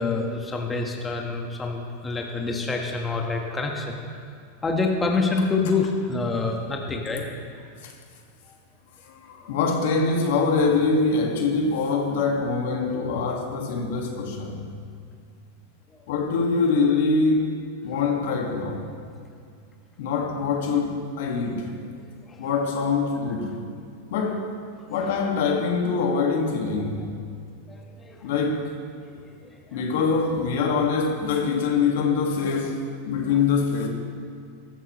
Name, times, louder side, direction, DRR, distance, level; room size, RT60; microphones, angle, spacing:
voice 1, 0.0-3.9 4.6-7.2 22.0-22.4 27.7-28.2 29.4-29.9, left 3 dB, 15° left, 1 dB, 1.4 m, -27 dB
voice 2, 9.1-14.6 16.1-17.5 17.8-18.8 20.0-21.7 22.4-23.6 24.1-24.5 24.9-27.1 28.2-28.7 29.7-33.9, left 4 dB, 70° left, 1 dB, 1.9 m, -24 dB
14.5 x 13.5 x 3.1 m, 2.3 s
hypercardioid pair, 115°, 0 cm